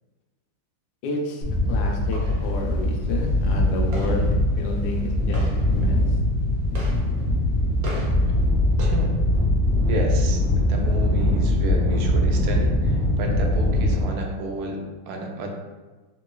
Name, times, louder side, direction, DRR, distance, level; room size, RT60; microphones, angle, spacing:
voice 1, 1.0-6.0, left 2 dB, 75° left, 1 dB, 1.2 m, -31 dB
sound 1, 1.4-14.0, left 1 dB, 65° right, 0.9 m, -22 dB
voice 2, 8.8-9.2 9.9-15.5, right 2 dB, 90° right, 1 dB, 1.5 m, -31 dB
3.7 x 3.0 x 2.3 m, 1.2 s
omnidirectional pair, 2.3 m